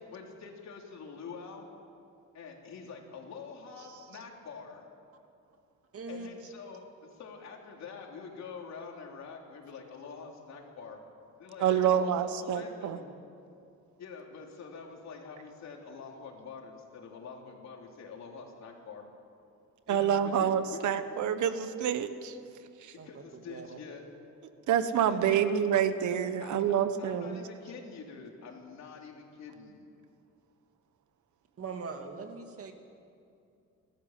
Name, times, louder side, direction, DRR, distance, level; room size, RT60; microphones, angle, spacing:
voice 1, 0.0-1.7 2.3-4.8 6.1-11.0 11.4-13.1 14.0-19.0 19.9-20.8 23.0-24.1 25.1-25.7 26.4-29.9, left 5 dB, 60° left, 1 dB, 3.6 m, -46 dB
voice 2, 5.9-6.3 19.9-20.0 23.0-23.8 31.6-32.7, right 4 dB, 50° right, 5 dB, 2.3 m, -42 dB
voice 3, 11.6-13.0 19.9-22.4 22.8-22.9 24.7-27.4, right 9 dB, 70° right, 11 dB, 1.2 m, -27 dB
29.5 x 13.5 x 7.6 m, 2.5 s
cardioid pair, 115°, 30 cm